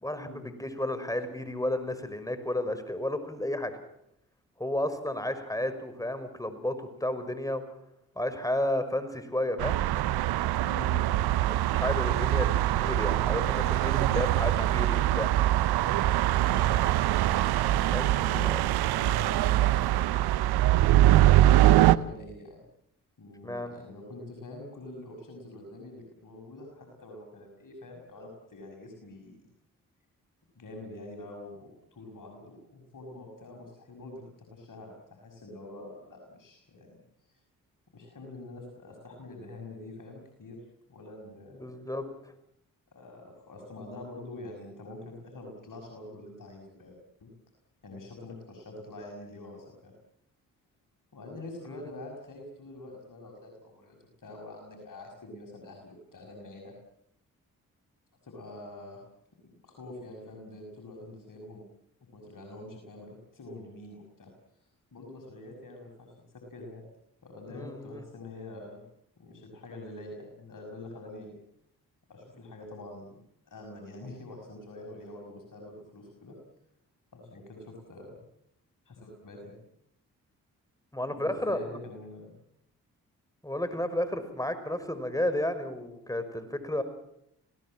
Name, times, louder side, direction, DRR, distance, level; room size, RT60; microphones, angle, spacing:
voice 1, 0.0-3.7 4.6-6.8 7.0-7.6 8.2-9.8 11.5-15.3 17.9-18.0 18.5-18.6 23.4-23.7 41.5-42.0 51.7-51.8 67.5-68.0 80.9-81.8 83.4-86.8, left 1 dB, 10° left, 10 dB, 5.4 m, -32 dB
sound 1, 9.6-22.0, right 14 dB, 75° right, 0.8 m, -23 dB
voice 2, 10.6-11.2 16.4-16.7 17.6-18.5 19.0-20.0 20.9-22.6 23.2-29.5 30.6-36.9 37.9-40.6 40.9-41.8 42.9-47.3 47.8-49.9 51.1-56.7 58.2-59.0 59.4-61.6 62.1-64.3 64.9-66.8 67.2-68.8 69.2-71.4 72.1-73.2 73.5-76.4 77.1-78.2 78.9-79.6 81.2-82.3, left 2 dB, 55° left, 1 dB, 6.1 m, -45 dB
26.5 x 18.0 x 7.6 m, 0.77 s
hypercardioid pair, 40°, 38 cm